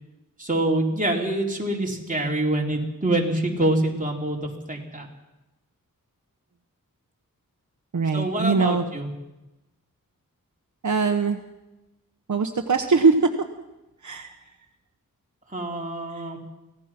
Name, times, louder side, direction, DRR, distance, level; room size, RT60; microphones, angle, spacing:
voice 1, 0.4-5.1 8.1-9.1 15.5-16.4, right 1 dB, 25° right, -1 dB, 4.0 m, -25 dB
voice 2, 7.9-8.8 10.8-11.4 12.3-13.2 14.0-14.4 16.1-16.2, right 4 dB, 60° right, 5 dB, 1.2 m, -22 dB
25.0 x 18.0 x 6.0 m, 1.0 s
wide cardioid pair, 100°, 34 cm